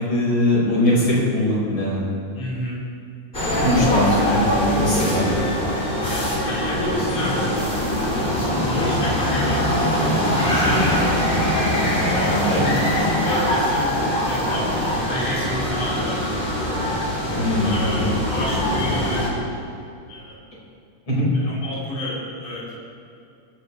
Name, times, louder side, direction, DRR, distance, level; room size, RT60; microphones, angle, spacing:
voice 1, 0.0-2.1 3.4-5.3 12.3-12.6 17.4-18.1 21.1-21.3, left 1 dB, 30° left, -6 dB, 5.6 m, -21 dB
voice 2, 2.3-2.8 3.9-4.1 6.0-7.6 8.3-10.9 12.0-14.0 14.2-16.8 17.6-19.3 20.1-20.4 21.3-22.7, left 1 dB, 50° left, -8 dB, 6.1 m, -31 dB
sound 1, 3.3-19.3, equal, 15° left, 3.2 m, -22 dB
22.5 x 15.0 x 3.4 m, 2.5 s
omnidirectional pair, 4.2 m